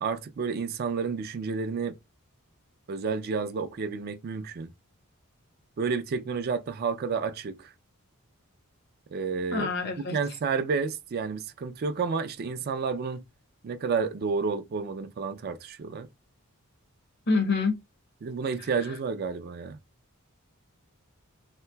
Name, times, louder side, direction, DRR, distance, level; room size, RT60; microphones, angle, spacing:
voice 1, 0.0-1.9 2.9-4.7 5.8-7.7 9.1-9.7 10.1-13.2 13.6-16.1 18.2-19.8, right 5 dB, 45° right, 0.3 m, -30 dB
voice 2, 9.5-10.2 17.3-17.7, left 4 dB, 50° left, 0.7 m, -26 dB
3.2 x 2.8 x 2.2 m
head